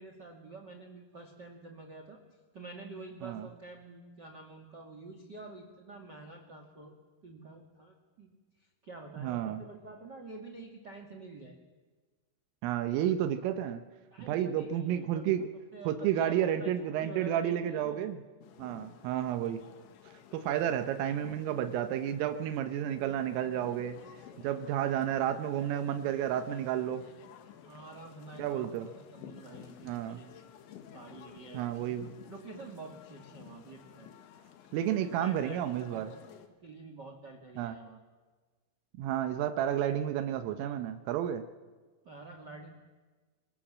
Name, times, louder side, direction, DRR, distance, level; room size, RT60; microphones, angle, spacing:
voice 1, 0.0-2.2 2.5-6.9 7.2-8.3 8.6-11.6 14.1-15.5 15.7-18.0 27.6-28.7 28.9-30.3 30.9-32.0 32.3-34.1 35.0-36.2 36.6-38.0 42.0-42.7, right 3 dB, 50° right, 4 dB, 1.3 m, -48 dB
voice 2, 9.2-9.6 12.6-13.8 14.2-15.5 15.9-18.2 18.6-19.6 20.3-24.0 24.4-27.0 28.4-28.9 29.9-30.2 31.5-32.1 34.7-36.1 37.6-37.8 39.0-41.5, right 10 dB, 85° right, 8 dB, 3.6 m, -31 dB
sound 1, 18.4-36.5, left 9 dB, 70° left, 3.8 m, -53 dB
29.5 x 23.5 x 7.4 m, 1.4 s
omnidirectional pair, 5.7 m